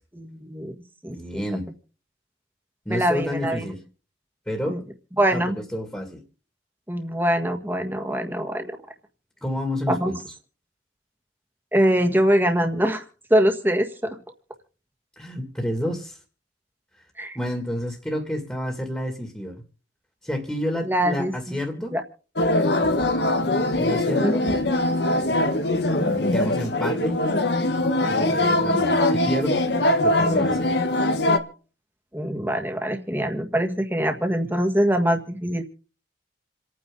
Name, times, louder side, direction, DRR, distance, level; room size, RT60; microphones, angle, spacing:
voice 1, 0.1-0.7 1.0-1.4 2.9-3.7 4.7-4.8 5.2-5.6 6.9-8.8 9.9-10.1 11.7-13.0 13.3-14.2 17.2-17.4 20.8-21.3 21.9-22.0 24.2-24.3 32.1-35.6, equal, 10° right, 5 dB, 1.7 m, -23 dB
voice 2, 1.1-1.7 2.9-3.8 4.5-4.8 5.3-5.4 5.7-6.2 9.4-10.3 15.2-16.2 17.3-19.6 20.2-22.0 23.8-24.5 25.9-27.2 28.1-29.6 30.0-30.8, left 1 dB, 5° left, 3 dB, 2.3 m, -30 dB
sound 1, 22.4-31.4, left 1 dB, 65° left, 1.6 m, -22 dB
28.5 x 9.5 x 3.9 m, 0.39 s
head